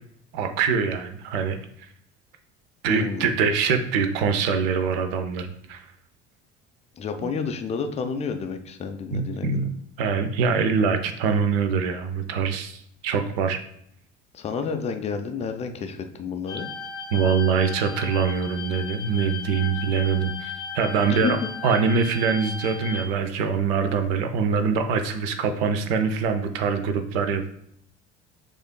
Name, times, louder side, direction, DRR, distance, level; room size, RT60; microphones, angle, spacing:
voice 1, 0.3-1.6 2.8-5.8 7.2-7.3 9.1-9.7 10.0-13.6 17.1-21.4 21.6-27.5, right 5 dB, 60° right, 8 dB, 0.6 m, -24 dB
voice 2, 2.9-3.4 6.9-9.7 14.3-16.7 21.1-21.5, left 5 dB, 20° left, 7 dB, 0.4 m, -30 dB
sound 1, 16.5-23.0, left 5 dB, 85° left, 0.5 m, -36 dB
6.3 x 2.5 x 2.2 m, 0.70 s
figure-of-eight pair, 60°, 34 cm